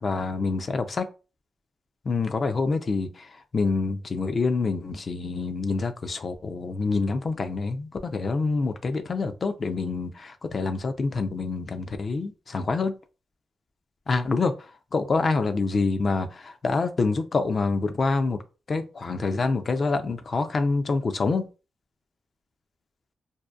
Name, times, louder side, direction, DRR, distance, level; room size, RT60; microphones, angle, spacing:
voice 1, 0.0-1.1 2.1-12.9 14.1-18.4 18.7-21.5, left 4 dB, 45° left, 0.4 m, -26 dB
2.6 x 2.1 x 2.3 m
cardioid pair, 80°, 0 cm